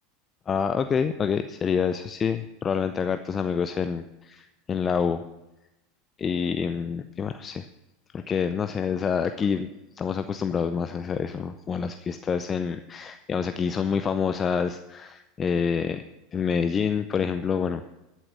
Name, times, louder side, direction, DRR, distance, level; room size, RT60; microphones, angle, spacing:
voice 1, 0.5-5.2 6.2-7.6 8.1-9.7 10.0-16.0 16.3-18.0, left 6 dB, 30° left, 10 dB, 0.6 m, -27 dB
14.0 x 7.5 x 6.5 m, 0.96 s
figure-of-eight pair, 80°, 0 cm